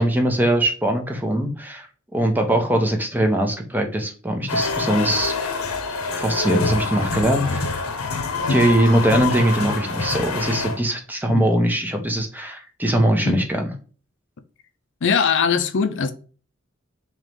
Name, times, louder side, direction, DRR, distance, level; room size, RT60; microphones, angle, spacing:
voice 1, 0.0-1.9 2.1-5.3 6.2-7.8 8.5-13.6, right 1 dB, 10° right, 0.8 m, -21 dB
sound 1, 4.5-10.8, left 4 dB, 90° left, 0.9 m, -26 dB
voice 2, 15.0-16.1, left 6 dB, 60° left, 0.6 m, -21 dB
3.7 x 3.1 x 3.2 m
head